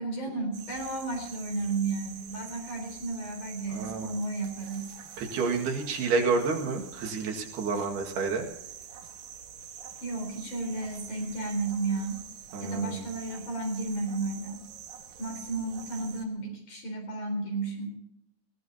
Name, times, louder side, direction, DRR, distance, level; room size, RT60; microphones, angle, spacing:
voice 1, 0.0-4.9 7.8-7.9 10.0-12.3 12.6-14.6 15.2-17.9, right 3 dB, 50° left, 2 dB, 5.3 m, -33 dB
sound 1, 0.5-16.3, right 8 dB, 60° right, 2.4 m, -46 dB
voice 2, 3.7-4.1 5.2-8.5 12.5-13.0, right 4 dB, 80° right, 1 dB, 3.9 m, -29 dB
20.5 x 18.0 x 2.8 m, 0.80 s
omnidirectional pair, 4.5 m